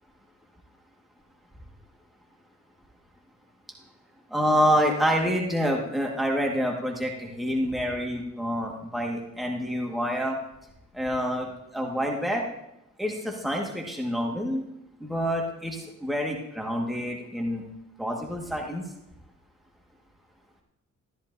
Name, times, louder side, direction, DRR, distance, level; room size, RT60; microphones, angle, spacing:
voice 1, 4.3-10.4 10.9-12.4 13.0-14.6 15.0-17.6 18.0-18.8, equal, ahead, -1 dB, 1.7 m, -27 dB
13.5 x 13.5 x 2.7 m, 0.84 s
cardioid pair, 90°, 30 cm